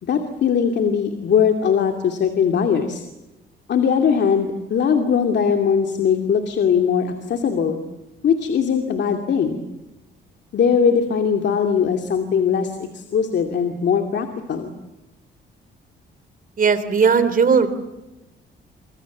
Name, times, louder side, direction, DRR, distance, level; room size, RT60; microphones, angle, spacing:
voice 1, 0.0-3.0 3.7-7.8 8.2-9.6 10.5-14.7, left 7 dB, 60° left, 4 dB, 2.6 m, -20 dB
voice 2, 16.6-17.7, right 5 dB, 45° right, 12 dB, 3.5 m, -17 dB
28.5 x 25.5 x 7.3 m, 1.0 s
cardioid pair, 90°, 20 cm